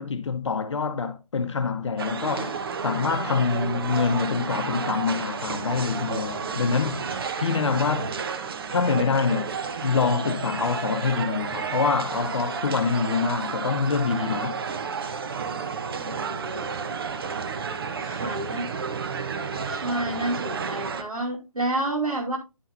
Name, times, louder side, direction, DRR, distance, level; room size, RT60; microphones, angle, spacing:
voice 1, 0.0-7.1 7.4-8.1 8.7-9.6 9.8-14.6, left 5 dB, 55° left, 0.7 m, -25 dB
sound 1, 2.0-21.0, right 5 dB, 40° right, 0.7 m, -31 dB
voice 2, 16.0-16.6 18.0-18.8 19.7-22.4, right 1 dB, 75° right, 2.5 m, -30 dB
9.7 x 5.6 x 2.6 m
figure-of-eight pair, 145°, 18 cm